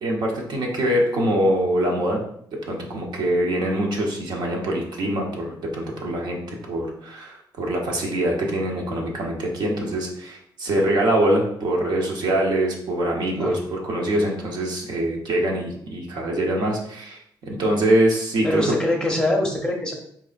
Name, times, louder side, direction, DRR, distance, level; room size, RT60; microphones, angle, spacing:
voice 1, 0.0-2.2 2.7-18.7, right 1 dB, 65° right, 0 dB, 0.9 m, -24 dB
voice 2, 18.4-19.9, left 1 dB, 10° left, 0 dB, 0.7 m, -23 dB
4.2 x 3.3 x 2.5 m, 0.68 s
cardioid pair, 135°, 8 cm